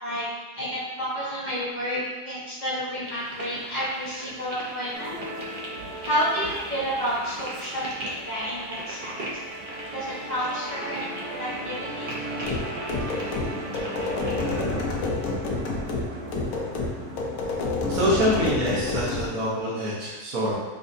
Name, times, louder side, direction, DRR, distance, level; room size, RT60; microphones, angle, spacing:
voice 1, 0.5-5.1 6.0-9.4 9.9-11.0 11.4-12.1, equal, 30° left, -10 dB, 1.1 m, -30 dB
sound 1, 3.1-14.6, right 1 dB, 50° right, 0.6 m, -39 dB
Musical instrument, 4.9-19.6, right 2 dB, 90° right, 1.2 m, -38 dB
sound 2, 12.4-19.3, left 3 dB, 75° left, 1.0 m, -29 dB
voice 2, 17.9-20.5, equal, 70° right, -9 dB, 1.4 m, -25 dB
5.3 x 2.5 x 2.6 m, 1.2 s
omnidirectional pair, 1.6 m